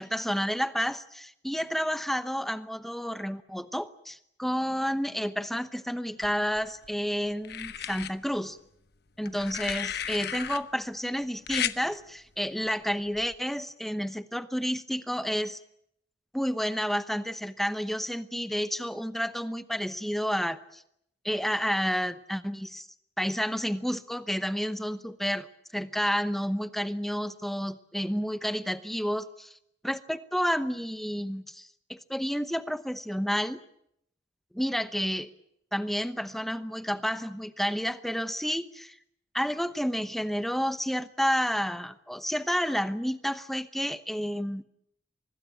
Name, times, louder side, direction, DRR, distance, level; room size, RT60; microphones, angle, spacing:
voice 1, 0.0-8.6 9.2-15.6 16.3-20.8 21.2-22.9 23.2-25.5 25.7-29.6 29.8-33.6 34.5-35.3 35.7-39.0 39.3-44.6, equal, ahead, 12 dB, 0.9 m, -30 dB
sound 1, 6.2-6.9 7.4-8.1 9.3-10.6 11.5-11.8 13.1-13.4, left 9 dB, 55° left, 1.0 m, -34 dB
24.5 x 20.5 x 8.9 m, 0.76 s
head